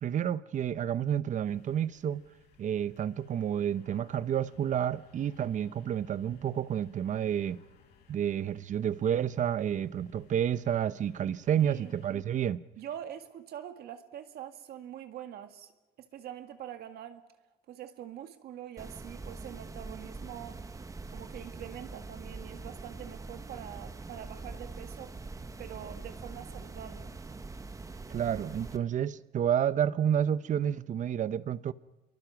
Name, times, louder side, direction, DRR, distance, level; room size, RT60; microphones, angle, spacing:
voice 1, 0.0-2.2 2.6-7.6 8.1-12.6 28.1-31.7, right 9 dB, 45° right, 0.8 m, -30 dB
sound 1, 1.4-12.2, left 6 dB, 80° left, 6.7 m, -62 dB
voice 2, 11.6-11.9 12.8-15.7 16.0-17.3 17.7-20.6 21.1-25.1 25.6-27.1, right 10 dB, 70° right, 1.9 m, -44 dB
sound 2, 18.8-28.8, right 3 dB, 20° right, 1.2 m, -43 dB
27.0 x 23.0 x 6.0 m
cardioid pair, 110°, 17 cm